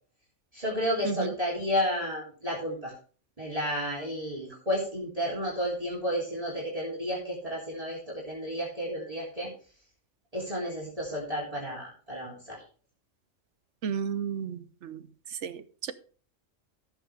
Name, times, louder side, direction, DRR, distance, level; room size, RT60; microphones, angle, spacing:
voice 1, 0.5-2.9 3.4-9.5 10.3-12.6, equal, 25° right, -6 dB, 3.3 m, -32 dB
voice 2, 13.8-15.0 15.4-15.9, right 7 dB, 70° right, 13 dB, 1.1 m, -33 dB
14.0 x 7.9 x 3.3 m, 0.39 s
omnidirectional pair, 1.3 m